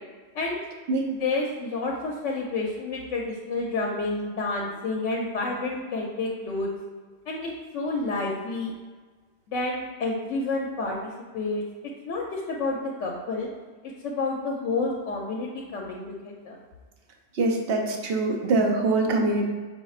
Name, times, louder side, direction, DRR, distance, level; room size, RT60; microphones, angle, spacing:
voice 1, 1.1-6.7 7.3-8.7 9.5-11.6 12.0-13.5 14.0-16.6, left 3 dB, 80° left, -1 dB, 0.9 m, -29 dB
voice 2, 17.4-19.5, right 2 dB, 60° right, 2 dB, 0.8 m, -24 dB
5.3 x 4.2 x 2.4 m, 1.4 s
omnidirectional pair, 1.3 m